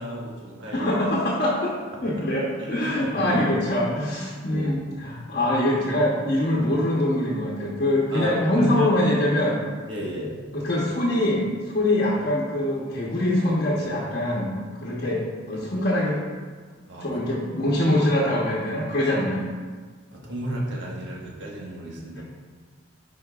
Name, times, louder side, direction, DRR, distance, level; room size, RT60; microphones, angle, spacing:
voice 1, 0.0-0.9 1.9-2.1 2.6-2.9 3.2-3.3 4.5-4.7 8.1-9.1 9.9-10.4 15.5-15.9 16.9-17.2 20.1-22.2, equal, 80° right, -3 dB, 1.4 m, -32 dB
voice 2, 0.7-1.7 2.0-9.6 10.5-14.5 14.8-16.2 17.0-19.4 22.1-22.2, left 1 dB, 50° left, -5 dB, 0.9 m, -24 dB
10.0 x 4.5 x 2.4 m, 1.5 s
head